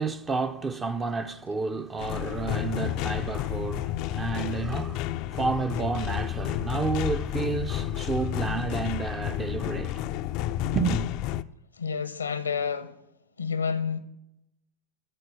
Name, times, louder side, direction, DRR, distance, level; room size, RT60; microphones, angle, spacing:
voice 1, 0.0-10.1 10.7-11.1, right 4 dB, 20° right, 0.6 m, -30 dB
sound 1, 2.0-11.4, left 12 dB, 45° left, 0.4 m, -31 dB
voice 2, 11.7-13.0 13.4-14.0, left 6 dB, 80° left, 0.8 m, -29 dB
12.5 x 4.4 x 8.2 m
figure-of-eight pair, 90°, 0 cm